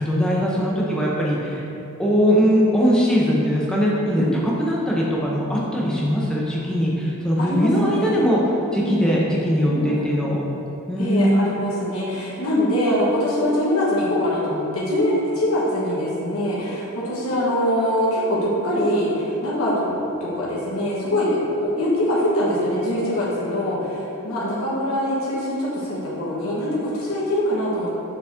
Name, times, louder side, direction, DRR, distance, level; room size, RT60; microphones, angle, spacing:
voice 1, 0.0-1.6 2.0-8.4 8.7-10.4 10.9-11.5, equal, 5° left, -5 dB, 0.7 m, -20 dB
voice 2, 7.4-8.3 8.8-9.2 9.6-10.2 11.0-19.9 20.2-27.9, left 1 dB, 70° left, -7 dB, 1.4 m, -23 dB
6.9 x 4.1 x 3.6 m, 3.0 s
head